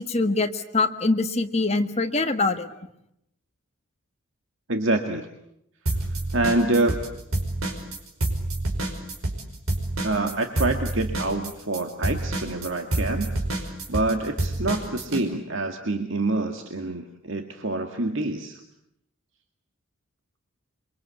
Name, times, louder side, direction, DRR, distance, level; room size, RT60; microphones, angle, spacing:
voice 1, 0.0-2.7, left 3 dB, 30° left, 6 dB, 1.5 m, -24 dB
voice 2, 4.7-5.3 6.3-7.0 10.0-13.3 13.6-18.6, right 2 dB, 65° right, 5 dB, 1.9 m, -26 dB
sound 1, 5.9-7.1 7.3-15.2, right 1 dB, 85° right, 5.4 m, -27 dB
28.0 x 24.0 x 8.4 m, 0.79 s
head